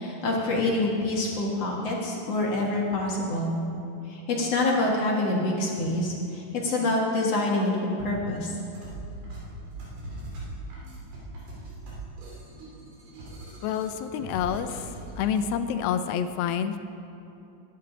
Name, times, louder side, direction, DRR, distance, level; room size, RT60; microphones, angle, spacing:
voice 1, 0.0-3.6 4.1-8.5, left 2 dB, 50° left, -3 dB, 2.1 m, -26 dB
sound 1, 8.6-15.5, right 2 dB, 85° right, 4.9 m, -40 dB
voice 2, 13.6-14.7 15.2-16.8, left 8 dB, 80° left, 9 dB, 2.3 m, -27 dB
21.0 x 10.5 x 3.9 m, 2.8 s
omnidirectional pair, 4.4 m